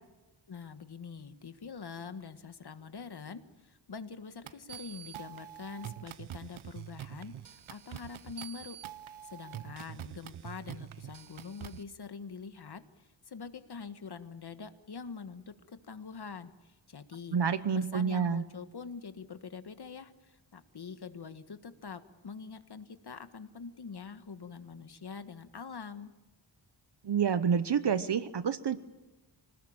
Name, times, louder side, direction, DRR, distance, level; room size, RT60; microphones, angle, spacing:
voice 1, 0.5-8.8 9.2-17.4 17.7-26.1, left 5 dB, 55° left, 10 dB, 1.7 m, -45 dB
sound 1, 4.5-11.8, right 11 dB, 85° right, 0.9 m, -45 dB
voice 2, 17.3-18.4 27.0-28.8, right 7 dB, 60° right, 13 dB, 1.0 m, -28 dB
25.5 x 19.0 x 8.8 m, 1.1 s
wide cardioid pair, 130°, 47 cm